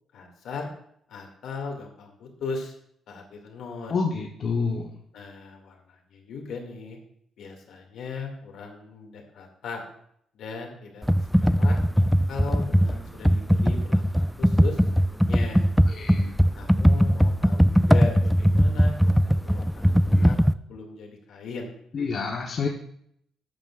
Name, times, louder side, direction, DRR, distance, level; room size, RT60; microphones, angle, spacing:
voice 1, 0.1-0.7 1.1-2.7 3.1-4.0 5.1-7.0 7.4-9.8 10.3-11.1 11.5-11.8 12.3-15.7 16.5-21.7, left 4 dB, 75° left, 2 dB, 2.2 m, -37 dB
voice 2, 3.9-4.9 15.9-16.3 21.9-22.7, left 4 dB, 50° left, 0 dB, 1.0 m, -28 dB
Computer keyboard, 11.0-20.5, equal, ahead, 0.3 m, -20 dB
13.0 x 9.0 x 2.4 m, 0.69 s
cardioid pair, 90°, 0 cm